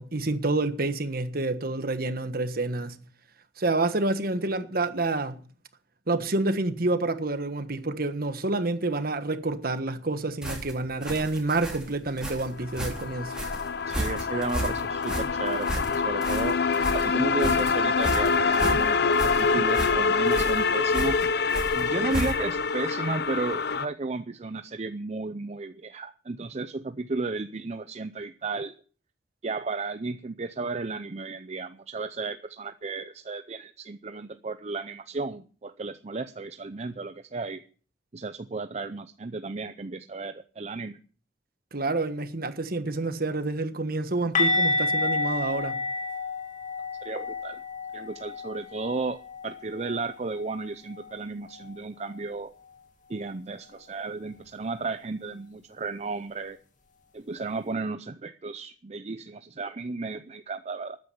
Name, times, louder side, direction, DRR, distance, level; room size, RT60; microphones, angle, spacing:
voice 1, 0.0-3.0 3.6-5.4 6.1-13.4 41.7-45.8, right 2 dB, 55° right, 1.4 m, -28 dB
sound 1, 10.4-22.6, right 1 dB, 5° right, 3.7 m, -34 dB
sound 2, 12.5-23.9, left 5 dB, 60° left, 0.7 m, -25 dB
voice 2, 13.9-16.6 16.9-19.0 19.2-28.7 29.4-37.6 38.1-41.0 47.0-47.6 47.9-52.5 53.1-56.6 57.1-61.0, right 3 dB, 40° right, 0.6 m, -34 dB
sound 3, 44.4-50.1 50.4-50.6 51.0-51.1 54.4-54.5, left 2 dB, 45° left, 2.3 m, -30 dB
13.5 x 9.5 x 6.9 m
head